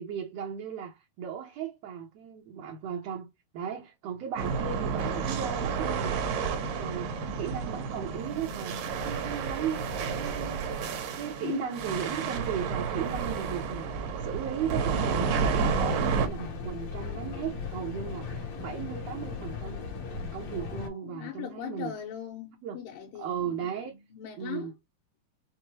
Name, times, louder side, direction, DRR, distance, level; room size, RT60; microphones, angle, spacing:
voice 1, 0.0-3.3 3.5-10.9 11.2-19.9 20.3-21.9 22.6-22.8 23.2-24.0 24.4-24.7, right 8 dB, 70° right, 1.7 m, -36 dB
sound 1, 4.4-16.3, right 5 dB, 90° right, 2.8 m, -31 dB
voice 2, 11.4-11.8 20.5-24.7, left 11 dB, 90° left, 2.7 m, -40 dB
Mechanical fan, 15.3-20.9, left 5 dB, 60° left, 2.2 m, -37 dB
6.2 x 2.2 x 2.9 m
omnidirectional pair, 3.8 m